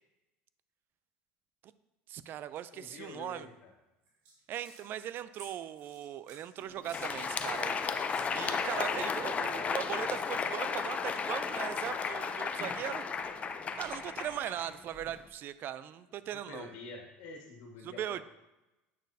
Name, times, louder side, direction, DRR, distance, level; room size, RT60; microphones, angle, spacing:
voice 1, 2.1-3.5 4.5-13.0 13.7-16.7 17.8-18.2, right 11 dB, 45° right, 15 dB, 0.4 m, -39 dB
sound 1, 2.5-2.6 3.1-3.4 4.0-4.8 5.3-7.7 8.1-9.3, right 3 dB, 75° right, 2.5 m, -55 dB
voice 2, 2.7-3.7 16.3-18.2, left 3 dB, 75° left, 1 dB, 1.7 m, -47 dB
Crowd, 6.7-15.2, left 5 dB, 30° left, 0.5 m, -34 dB
8.5 x 6.3 x 2.7 m, 0.99 s
supercardioid pair, 110°, 5 cm